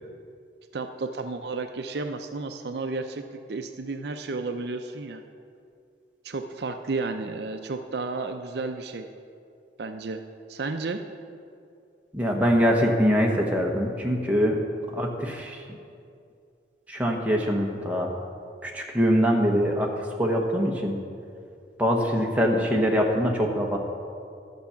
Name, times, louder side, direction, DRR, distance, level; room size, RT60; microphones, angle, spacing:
voice 1, 0.7-5.2 6.2-9.1 9.8-10.2 10.5-11.0, right 3 dB, 60° right, 7 dB, 0.5 m, -32 dB
voice 2, 12.1-14.6 14.9-15.6 16.9-18.1 18.6-21.0 21.8-23.8, equal, 10° right, -1 dB, 1.0 m, -23 dB
12.0 x 7.0 x 5.7 m, 2.4 s
head